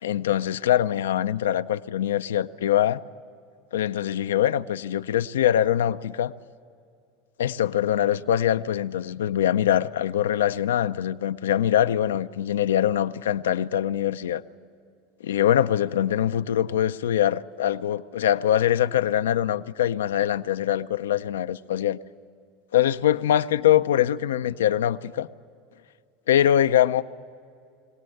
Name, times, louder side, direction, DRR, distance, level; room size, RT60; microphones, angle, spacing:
voice 1, 0.0-3.0 3.7-6.3 7.4-14.4 15.2-22.0 22.7-25.3 26.3-27.0, left 11 dB, 90° left, 0.5 m, -23 dB
23.5 x 18.0 x 7.8 m
hypercardioid pair, 100°, 0 cm